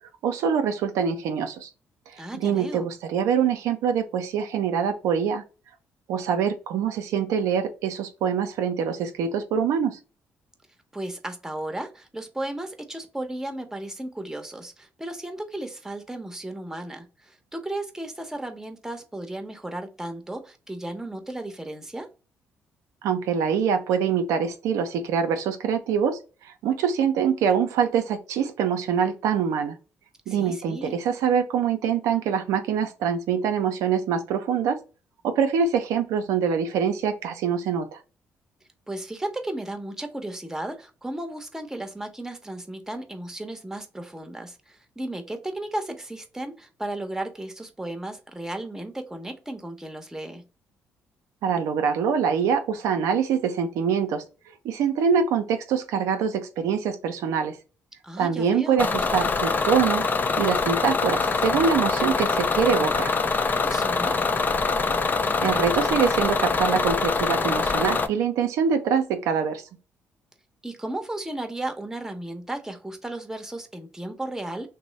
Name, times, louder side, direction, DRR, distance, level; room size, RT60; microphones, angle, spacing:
voice 1, 0.2-1.7 2.4-5.4 6.1-10.0 23.0-29.8 30.3-34.8 35.2-38.0 51.4-54.2 54.6-57.6 58.2-60.0 60.4-63.1 65.4-69.6, right 7 dB, 80° right, 0.5 m, -24 dB
voice 2, 2.2-2.9 10.9-22.1 30.3-31.0 38.9-50.4 58.0-58.9 63.6-64.2 70.6-74.7, right 1 dB, 10° right, 0.9 m, -34 dB
Bus / Engine, 58.8-68.1, left 4 dB, 35° left, 0.5 m, -24 dB
3.0 x 2.0 x 3.9 m
supercardioid pair, 60°, 5 cm